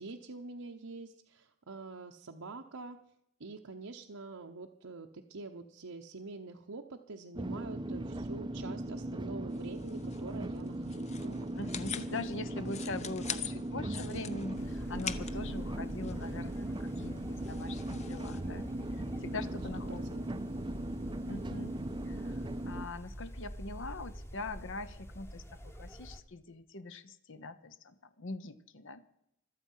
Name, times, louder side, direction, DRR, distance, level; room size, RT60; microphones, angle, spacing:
voice 1, 0.0-3.0 3.4-11.5 19.9-20.4, right 3 dB, 80° right, 1 dB, 1.0 m, -46 dB
sound 1, 7.3-22.9, right 1 dB, 20° right, 0.5 m, -38 dB
sound 2, 9.5-18.4, left 8 dB, 30° left, 0.8 m, -45 dB
voice 2, 11.6-20.0 21.3-21.7 22.0-29.0, left 3 dB, 60° left, 12 dB, 0.9 m, -43 dB
sound 3, 14.5-26.2, equal, 10° left, 1.0 m, -46 dB
25.0 x 8.5 x 5.6 m, 0.79 s
head